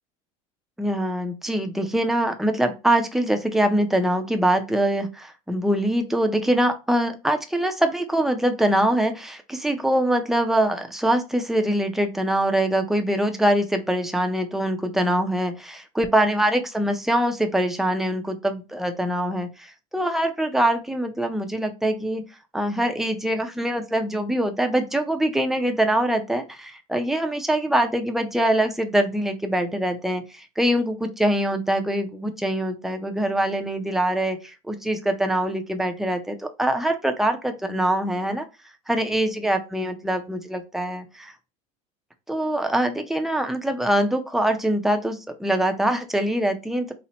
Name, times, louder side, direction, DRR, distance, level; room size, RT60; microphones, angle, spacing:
voice 1, 0.8-22.2 22.5-38.4 38.9-41.3 42.3-46.9, right 1 dB, ahead, 5 dB, 0.4 m, -23 dB
4.1 x 2.1 x 3.9 m, 0.28 s
cardioid pair, 160°, 16 cm